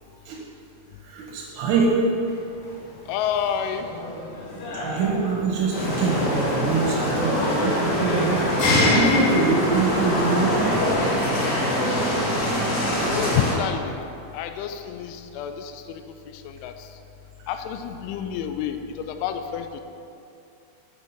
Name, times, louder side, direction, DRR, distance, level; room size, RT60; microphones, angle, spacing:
voice 1, 1.1-1.9 4.7-8.5 8.8-10.8, right 4 dB, 85° right, -3 dB, 3.7 m, -24 dB
sound 1, 2.3-11.6, left 2 dB, 70° left, 3.8 m, -28 dB
voice 2, 3.1-3.9 13.2-14.0 14.3-16.0 16.5-16.7 17.5-19.8, left 8 dB, 85° left, 7 dB, 3.0 m, -29 dB
sound 2, 5.7-13.5, equal, 55° left, 1.1 m, -24 dB
8.2 x 6.3 x 5.9 m, 2.7 s
omnidirectional pair, 5.4 m